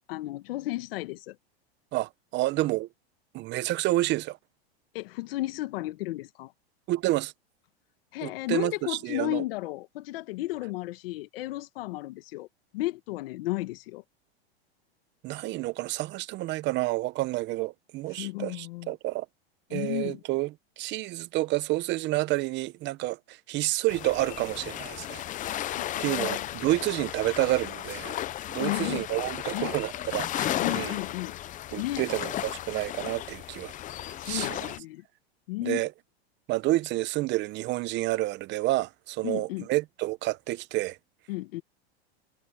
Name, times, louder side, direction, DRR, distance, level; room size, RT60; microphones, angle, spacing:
voice 1, 0.0-1.4 4.9-6.5 8.1-12.5 12.7-14.0 18.1-18.9 19.7-20.2 25.7-26.5 28.6-29.2 29.5-29.8 30.6-31.4 31.8-32.1 34.2-35.0 35.5-35.8 39.2-39.7 41.3-41.6, left 18 dB, 65° left, 1.6 m, -33 dB
voice 2, 1.9-2.9 3.3-4.4 6.9-7.3 8.2-9.4 15.2-19.3 19.7-25.2 26.0-28.2 28.5-31.0 31.7-33.7 34.3-34.7 35.6-35.9 36.5-41.0, right 18 dB, 35° right, 0.9 m, -29 dB
sound 1, 23.9-34.8, left 12 dB, 25° left, 0.7 m, -34 dB
supercardioid pair, 125°, 31 cm